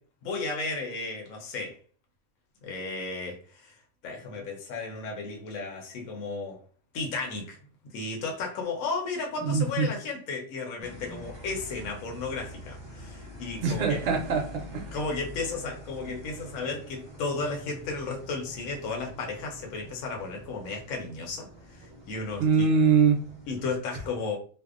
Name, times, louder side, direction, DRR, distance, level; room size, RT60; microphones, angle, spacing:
voice 1, 0.2-1.8 2.6-3.8 4.0-6.6 6.9-7.6 7.9-14.0 14.9-22.7 23.5-24.4, left 3 dB, 75° left, 1 dB, 1.0 m, -34 dB
voice 2, 9.4-9.9 13.6-15.0 22.4-23.4, right 5 dB, 65° right, 2 dB, 0.8 m, -23 dB
sound 1, 10.8-23.8, equal, 35° right, 0.5 m, -46 dB
2.6 x 2.0 x 2.4 m, 0.43 s
omnidirectional pair, 1.5 m